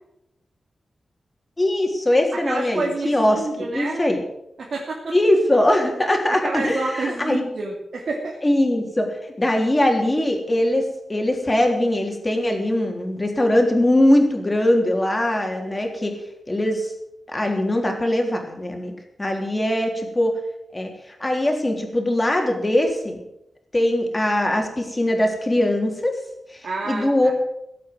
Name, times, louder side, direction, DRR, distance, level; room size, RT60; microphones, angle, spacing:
voice 1, 1.6-3.4 3.7-4.2 5.1-7.4 8.4-16.1 16.5-16.9 17.3-18.9 19.2-20.3 20.7-23.2 23.7-26.2 26.5-26.6 26.9-27.3, left 1 dB, 20° left, 2 dB, 3.5 m, -21 dB
voice 2, 2.3-4.0 4.6-5.2 6.3-8.4 26.6-27.3, right 3 dB, 70° right, -2 dB, 2.9 m, -29 dB
17.5 x 8.5 x 7.9 m, 0.82 s
wide cardioid pair, 110°, 0 cm